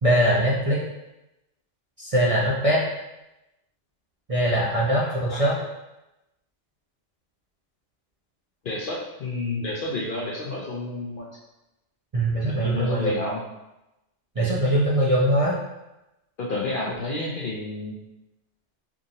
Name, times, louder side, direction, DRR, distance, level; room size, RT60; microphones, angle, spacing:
voice 1, 0.0-0.8 2.0-2.8 4.3-5.6 12.1-13.2 14.4-15.6, right 1 dB, 40° right, -6 dB, 0.5 m, -22 dB
voice 2, 5.0-5.4 8.6-11.3 12.4-13.4 16.4-18.0, left 2 dB, 60° left, -3 dB, 0.6 m, -30 dB
4.8 x 2.6 x 2.8 m, 0.95 s
omnidirectional pair, 1.3 m